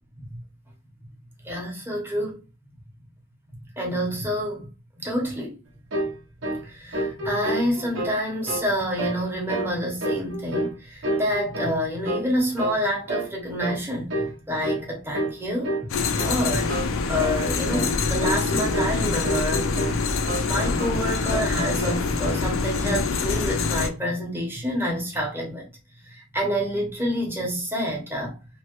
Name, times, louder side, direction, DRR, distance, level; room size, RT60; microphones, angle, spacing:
voice 1, 1.4-2.4 3.8-4.7 5.0-5.5 6.6-14.1 14.5-15.9 16.2-16.7 17.1-19.7 20.4-25.7 26.1-28.4, equal, 10° right, 0.8 m, -28 dB
sound 1, 5.9-6.2 6.4-6.7 6.9-8.2 8.5-8.7 9.0-9.2 9.5-9.7 10.0-10.8 11.0-11.8 12.0-12.3 12.6-12.8 13.1-13.3 13.6-13.8 14.1-14.4 14.6-14.8 15.1-15.4 15.6-15.9 16.2-16.4 16.7-16.9 17.2-17.4 17.7-17.9 18.2-19.0 19.2-20.0 20.3-21.0 21.3-22.0, right 2 dB, 65° right, 0.8 m, -29 dB
sound 2, 15.9-23.9, left 4 dB, 75° left, 0.4 m, -25 dB
3.0 x 2.1 x 2.9 m
head